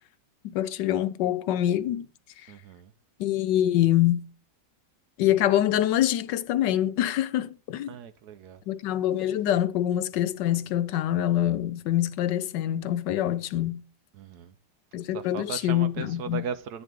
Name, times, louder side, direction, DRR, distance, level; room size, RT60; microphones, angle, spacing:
voice 1, 0.4-2.0 3.2-4.2 5.2-7.9 8.7-13.8 14.9-16.4, left 12 dB, 75° left, 1.3 m, -25 dB
voice 2, 2.5-2.9 7.9-8.6 14.1-14.5 15.1-16.8, right 7 dB, 70° right, 1.1 m, -37 dB
10.5 x 9.2 x 3.7 m
omnidirectional pair, 1.9 m